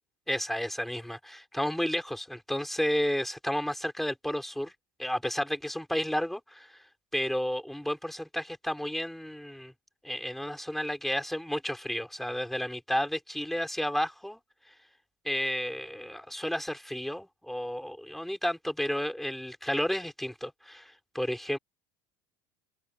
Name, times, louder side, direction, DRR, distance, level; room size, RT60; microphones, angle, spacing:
voice 1, 0.3-4.7 5.0-6.8 7.1-9.7 10.0-14.4 15.2-21.6, equal, ahead, 6.3 m, -32 dB
open air
supercardioid pair, 110°, 11 cm